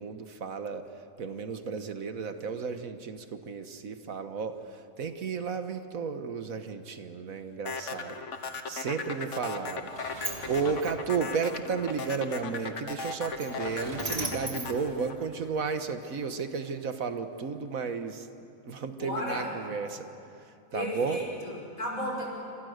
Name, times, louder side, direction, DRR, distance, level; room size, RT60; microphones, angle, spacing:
voice 1, 0.0-8.2 8.7-9.9 10.2-18.3 18.6-20.1 20.3-21.2, right 5 dB, 80° right, 8 dB, 1.8 m, -33 dB
sound 1, 7.7-16.0, left 4 dB, 60° left, 1.6 m, -37 dB
Sliding door, 9.3-15.7, right 2 dB, 40° right, 2.9 m, -40 dB
voice 2, 19.0-19.5 20.7-22.2, left 1 dB, 80° left, -2 dB, 6.6 m, -35 dB
27.0 x 26.0 x 6.6 m, 2.7 s
omnidirectional pair, 1.4 m